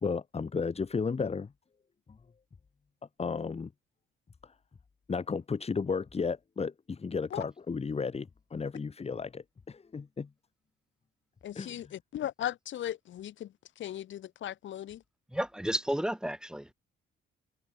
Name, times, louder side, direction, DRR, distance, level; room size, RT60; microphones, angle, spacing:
voice 1, 0.0-1.5 3.2-3.7 4.4-4.5 5.1-10.3 11.6-11.8, left 5 dB, 30° left, 2.0 m, -33 dB
voice 2, 11.4-13.5 13.8-15.0, left 12 dB, 70° left, 2.4 m, -37 dB
voice 3, 15.3-16.7, equal, 5° right, 4.0 m, -32 dB
cardioid pair, 90°, 20 cm